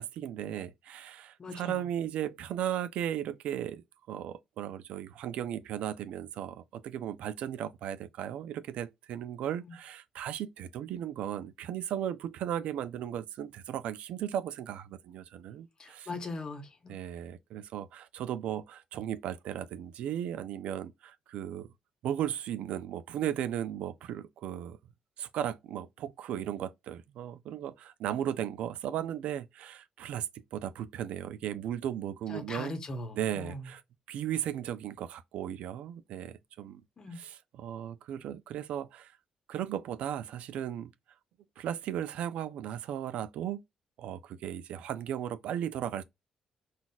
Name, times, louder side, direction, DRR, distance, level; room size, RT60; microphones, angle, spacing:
voice 1, 0.0-3.8 4.1-16.1 16.9-21.7 22.0-24.8 25.2-32.8 33.1-33.8 34.1-36.8 37.1-39.1 39.5-40.9 41.6-43.6 44.0-46.0, right 10 dB, 80° right, 0.3 m, -36 dB
voice 2, 1.4-1.8 9.6-9.8 15.8-16.9 32.3-33.7 37.0-37.2, left 2 dB, 35° left, 0.9 m, -40 dB
3.9 x 2.4 x 2.3 m
cardioid pair, 100°, 2 cm